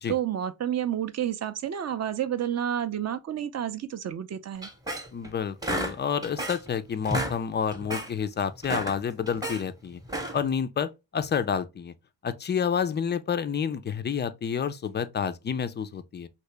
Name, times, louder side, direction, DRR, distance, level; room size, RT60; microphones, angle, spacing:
voice 1, 0.1-4.7, right 10 dB, 35° right, 0.4 m, -30 dB
sound 1, 4.6-5.3 5.6-6.7 7.0-7.4 7.7-8.1 8.5-9.6 10.0-10.5, right 1 dB, 10° right, 0.8 m, -32 dB
voice 2, 5.1-10.0 10.3-11.9 12.2-16.3, left 7 dB, 25° left, 0.3 m, -29 dB
2.9 x 2.7 x 3.2 m
hypercardioid pair, 40°, 49 cm